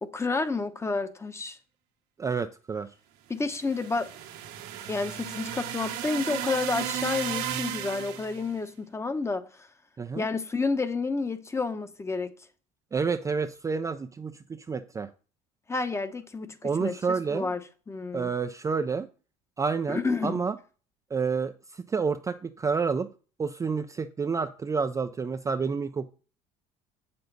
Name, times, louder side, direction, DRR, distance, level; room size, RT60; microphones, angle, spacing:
voice 1, 0.0-1.6 3.3-4.1 4.9-9.7 10.2-12.3 15.7-17.6 17.9-18.3 19.9-20.4, left 3 dB, 15° left, 0.9 m, -30 dB
voice 2, 2.2-2.9 10.0-10.3 12.9-15.1 16.6-17.5 18.1-19.1 19.6-20.6 21.1-23.1 23.4-26.1, right 5 dB, 20° right, 0.4 m, -29 dB
sound 1, 3.5-8.5, right 10 dB, 85° right, 1.5 m, -34 dB
7.7 x 6.9 x 4.0 m
supercardioid pair, 105°, 16 cm